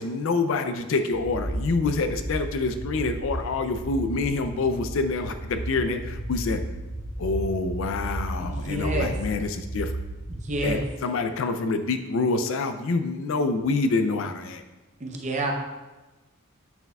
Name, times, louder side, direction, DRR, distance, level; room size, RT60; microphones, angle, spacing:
voice 1, 0.0-6.6 7.2-9.9 10.6-14.6, left 3 dB, 65° left, 8 dB, 0.4 m, -26 dB
sound 1, 1.1-10.7, right 1 dB, 25° left, 1.9 m, -34 dB
voice 2, 8.4-9.1 10.5-10.8 15.0-15.5, right 1 dB, 35° right, 2 dB, 0.7 m, -28 dB
9.3 x 4.6 x 2.3 m, 1.1 s
head